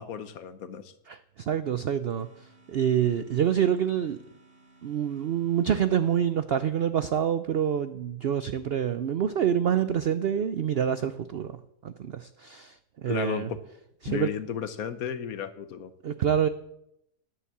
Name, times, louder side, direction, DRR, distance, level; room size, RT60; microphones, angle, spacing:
voice 1, 0.0-0.9 13.0-13.5 14.1-15.9, left 8 dB, 65° left, 12 dB, 1.3 m, -34 dB
voice 2, 1.1-4.2 4.8-13.5 14.0-14.3 16.0-16.5, right 9 dB, 80° right, 12 dB, 0.5 m, -27 dB
sound 1, 2.1-6.9, right 2 dB, 5° right, 3.7 m, -59 dB
10.0 x 9.0 x 7.2 m, 0.77 s
omnidirectional pair, 1.7 m